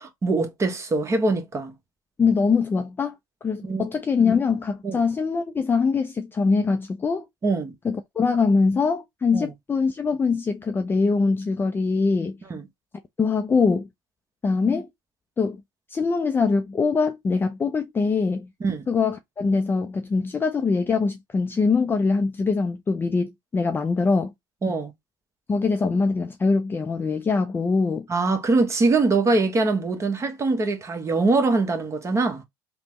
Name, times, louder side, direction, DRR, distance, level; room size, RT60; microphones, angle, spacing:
voice 1, 0.0-1.7 3.6-3.8 4.8-5.0 7.4-7.7 9.3-9.5 12.5-12.7 18.6-18.9 24.6-24.9 28.1-32.4, right 3 dB, 30° right, 0.9 m, -23 dB
voice 2, 2.2-3.2 3.4-7.3 7.8-12.4 13.2-13.9 14.4-14.9 15.4-15.6 15.9-18.5 18.9-24.3 25.5-28.1, left 4 dB, 20° left, 0.4 m, -23 dB
3.2 x 2.1 x 2.9 m
hypercardioid pair, 75°, 10 cm